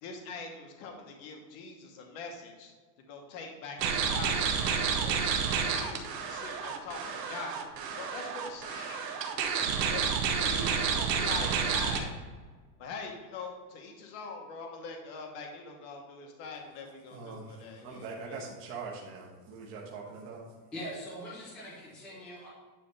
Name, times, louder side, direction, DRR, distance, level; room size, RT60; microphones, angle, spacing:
voice 1, 0.0-2.7 3.1-5.3 5.7-9.1 9.9-12.2 12.8-18.4, left 3 dB, 30° left, 2 dB, 1.0 m, -43 dB
sound 1, 3.8-12.0, right 6 dB, 75° right, 1.3 m, -30 dB
voice 2, 17.1-20.4, right 4 dB, 25° right, -4 dB, 1.2 m, -42 dB
voice 3, 20.7-22.5, equal, ahead, -7 dB, 0.4 m, -42 dB
10.0 x 3.4 x 5.4 m, 1.4 s
supercardioid pair, 180°, 50 cm